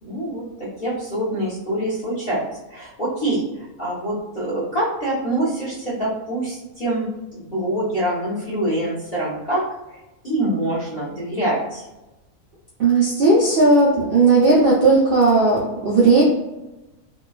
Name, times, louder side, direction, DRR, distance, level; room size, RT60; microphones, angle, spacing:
voice 1, 0.0-7.1 7.3-9.6 9.9-11.8, right 1 dB, 35° left, -10 dB, 0.9 m, -25 dB
voice 2, 12.8-16.2, right 3 dB, 65° right, -6 dB, 0.5 m, -15 dB
2.8 x 2.3 x 2.3 m, 1.0 s
omnidirectional pair, 1.5 m